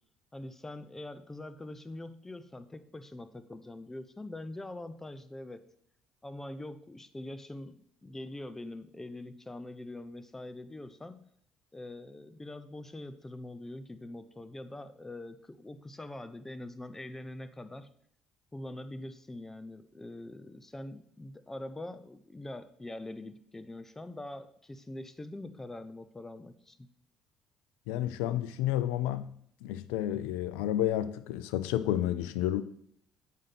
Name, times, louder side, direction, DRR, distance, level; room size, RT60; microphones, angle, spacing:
voice 1, 0.3-5.7 6.2-11.3 11.7-17.9 18.5-26.9, left 1 dB, 15° left, 0.8 m, -43 dB
voice 2, 27.9-29.3 29.6-32.6, left 12 dB, 75° left, 0.4 m, -30 dB
7.5 x 5.0 x 5.9 m
hypercardioid pair, 60°, 2 cm